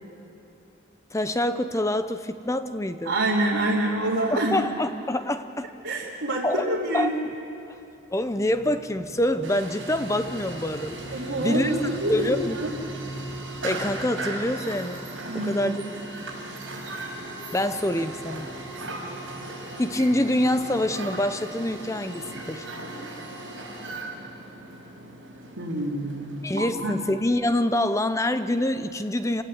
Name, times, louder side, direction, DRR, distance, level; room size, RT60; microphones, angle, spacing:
voice 1, 1.1-3.1 4.3-5.7 6.4-6.7 6.9-7.1 8.1-11.0 11.4-11.7 12.1-12.6 13.6-15.1 15.3-15.8 17.5-18.5 19.8-22.7 26.4-29.4, left 1 dB, 15° left, 10 dB, 0.7 m, -26 dB
voice 2, 3.0-4.6 5.8-7.1 11.1-12.7 15.2-15.6 18.9-19.0 25.6-27.0, right 1 dB, 90° right, -7 dB, 2.9 m, -27 dB
sound 1, 7.8-22.6, right 1 dB, 50° left, 5.6 m, -43 dB
sound 2, 9.4-27.1, right 2 dB, 65° right, 5.9 m, -38 dB
27.5 x 17.0 x 8.2 m, 3.0 s
head